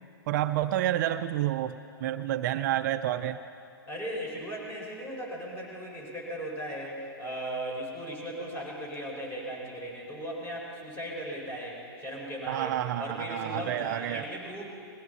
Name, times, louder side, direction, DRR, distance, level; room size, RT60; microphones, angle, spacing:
voice 1, 0.3-1.8 2.0-3.4 12.5-14.3, right 12 dB, 45° right, 10 dB, 0.5 m, -29 dB
voice 2, 3.9-14.7, equal, 20° left, -2 dB, 4.9 m, -37 dB
21.0 x 16.0 x 4.1 m, 2.6 s
hypercardioid pair, 125°, 13 cm